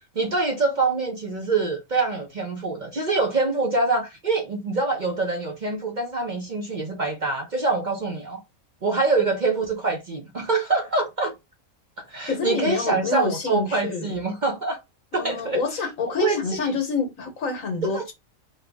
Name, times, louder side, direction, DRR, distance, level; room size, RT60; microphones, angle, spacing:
voice 1, 0.1-8.4 8.8-11.3 12.1-14.8 15.1-15.6 16.0-16.7 17.8-18.1, right 3 dB, 40° right, 0.8 m, -25 dB
voice 2, 12.3-14.2 15.2-18.1, left 4 dB, 75° left, 1.6 m, -27 dB
4.2 x 2.4 x 3.4 m
omnidirectional pair, 1.4 m